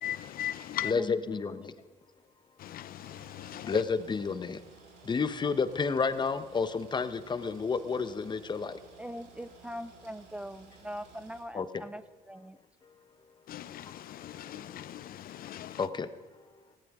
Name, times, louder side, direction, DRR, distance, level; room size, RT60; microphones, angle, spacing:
voice 1, 0.0-0.9 2.6-3.8 13.5-15.9, left 11 dB, 60° left, 0.6 m, -38 dB
voice 2, 0.8-1.7 3.6-4.6 5.0-8.8 11.5-11.8 14.2-14.3 15.8-16.1, left 5 dB, 25° left, 0.9 m, -30 dB
sound 1, 3.0-11.4, right 4 dB, 80° right, 5.1 m, -56 dB
voice 3, 9.0-12.6, equal, 5° right, 0.4 m, -42 dB
19.5 x 17.0 x 3.6 m
cardioid pair, 110°, 17 cm